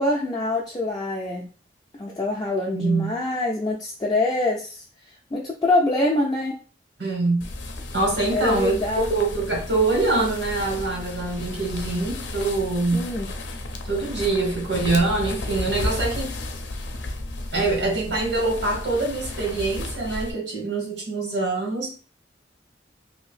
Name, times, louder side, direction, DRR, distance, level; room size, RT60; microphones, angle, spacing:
voice 1, 0.0-1.5 2.0-4.8 5.3-6.6 8.3-9.1 12.9-13.3, left 2 dB, 25° left, -2 dB, 0.4 m, -24 dB
voice 2, 2.7-3.2 7.0-7.4 7.9-8.8 9.1-13.0 13.8-16.3 17.5-21.9, right 3 dB, 90° right, -1 dB, 1.6 m, -24 dB
sound 1, 7.4-20.3, left 2 dB, 85° left, 0.5 m, -33 dB
2.7 x 2.6 x 3.2 m, 0.36 s
head